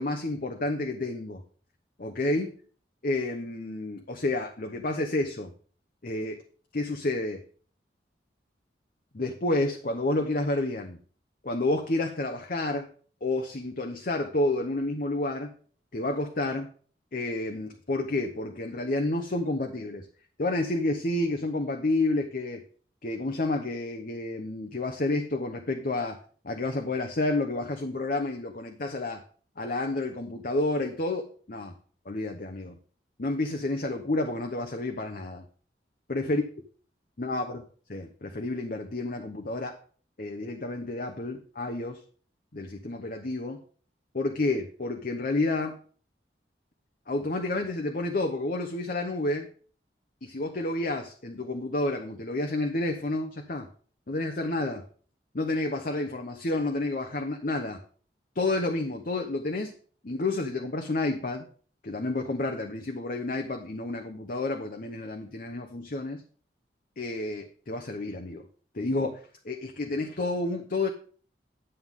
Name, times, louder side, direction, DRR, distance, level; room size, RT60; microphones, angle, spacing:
voice 1, 0.0-1.4 2.0-2.5 3.0-5.5 6.0-6.4 6.7-7.4 9.1-11.0 11.4-12.9 13.2-15.5 15.9-16.7 17.1-20.1 20.4-22.6 23.0-26.2 26.4-29.2 29.6-31.7 32.1-32.8 33.2-35.4 36.1-36.4 37.2-37.6 37.9-39.8 40.2-42.0 42.5-43.6 44.1-45.8 47.1-49.5 50.2-53.7 54.1-54.8 55.3-57.8 58.3-59.7 60.0-61.5 61.8-66.2 67.0-68.5 68.7-70.9, left 2 dB, 50° left, 4 dB, 0.9 m, -30 dB
11.0 x 7.9 x 3.7 m, 0.44 s
head